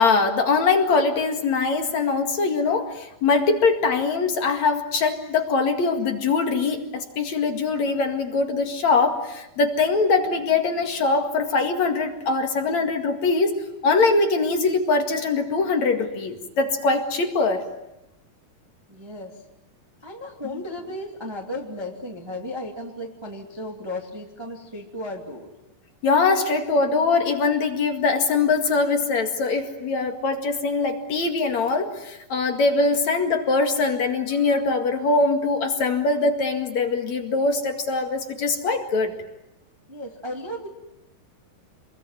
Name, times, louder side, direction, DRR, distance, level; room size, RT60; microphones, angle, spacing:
voice 1, 0.0-17.7 20.4-20.5 26.0-39.1, left 4 dB, 50° left, 5 dB, 2.8 m, -22 dB
voice 2, 18.9-19.4 20.0-25.5 39.9-40.7, left 1 dB, 10° right, 0 dB, 1.8 m, -35 dB
27.0 x 22.0 x 9.4 m, 0.90 s
omnidirectional pair, 4.8 m